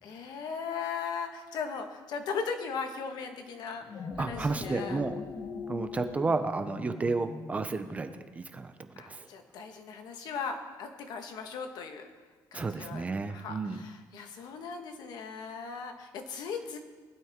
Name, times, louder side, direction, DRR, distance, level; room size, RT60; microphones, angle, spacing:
voice 1, 0.0-3.8 4.2-5.0 9.0-12.1 12.5-16.8, left 5 dB, 60° left, 5 dB, 1.5 m, -38 dB
sound 1, 3.7-8.3, left 4 dB, 35° left, 1.1 m, -41 dB
voice 2, 4.2-5.2 5.7-8.7 9.1-9.3 12.5-13.8, right 3 dB, 20° right, 8 dB, 0.6 m, -32 dB
19.5 x 12.0 x 3.7 m, 1.4 s
cardioid pair, 175°, 8 cm